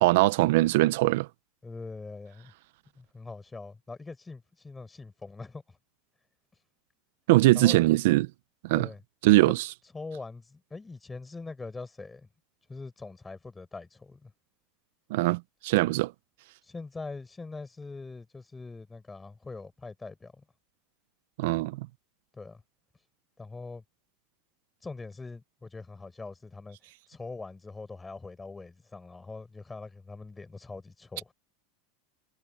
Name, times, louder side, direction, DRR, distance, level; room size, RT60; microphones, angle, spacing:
voice 1, 0.0-1.3 7.3-8.3 8.6-8.9 9.2-9.6 15.1-16.1 21.4-21.9, right 18 dB, 70° right, 0.9 m, -22 dB
voice 2, 1.6-2.5 2.9-5.8 7.5-7.8 8.7-9.0 9.4-9.5 9.9-12.3 12.7-14.3 16.6-20.4 22.3-22.6 23.4-23.8 24.8-26.8 27.1-31.3, left 3 dB, 10° left, 4.8 m, -42 dB
supercardioid pair, 125°, 0 cm